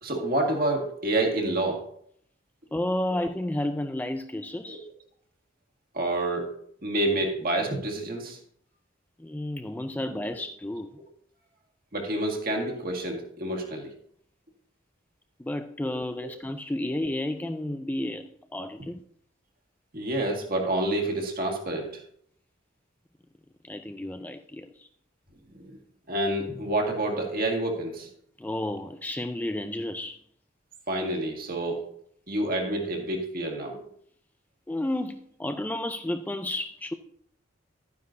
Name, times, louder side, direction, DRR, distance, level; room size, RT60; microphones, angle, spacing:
voice 1, 0.0-1.9 4.7-4.8 5.9-8.4 11.9-13.9 16.2-16.3 19.9-22.0 25.5-25.8 26.1-28.1 30.9-31.9 32.3-33.8, right 1 dB, 50° right, 1 dB, 1.9 m, -28 dB
voice 2, 2.7-4.9 9.2-10.9 15.4-18.3 18.5-19.0 23.6-24.9 28.4-30.2 34.7-36.9, left 1 dB, 10° left, 7 dB, 0.3 m, -31 dB
11.5 x 9.5 x 2.6 m, 0.65 s
head